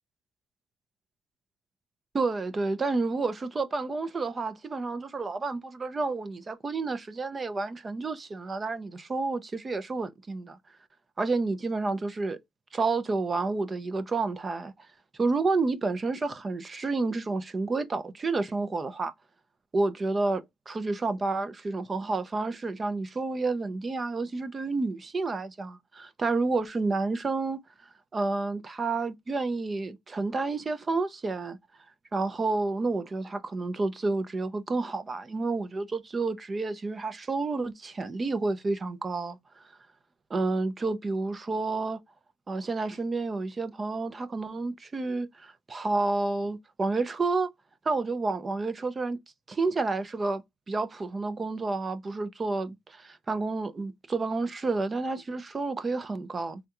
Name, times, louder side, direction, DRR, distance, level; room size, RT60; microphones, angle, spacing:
voice 1, 2.1-10.6 11.2-12.4 12.7-14.7 15.2-19.1 19.7-27.6 28.1-31.6 32.1-39.4 40.3-42.0 42.5-47.5 47.9-49.2 49.5-56.6, right 3 dB, 25° right, 0.5 m, -30 dB
3.6 x 2.2 x 2.8 m
cardioid pair, 130°, 0 cm